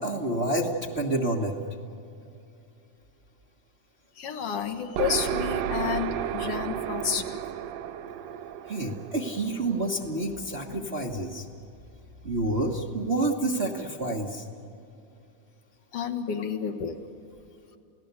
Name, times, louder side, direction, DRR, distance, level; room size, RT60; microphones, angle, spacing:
voice 1, 0.0-1.6 8.7-11.4 12.2-14.5, right 2 dB, 45° right, -1 dB, 0.8 m, -28 dB
voice 2, 4.2-7.4 15.9-17.0, left 7 dB, 55° left, 5 dB, 2.3 m, -30 dB
sound 1, 5.0-10.6, right 9 dB, 70° right, 1.7 m, -32 dB
29.0 x 17.5 x 8.2 m, 2.7 s
omnidirectional pair, 3.6 m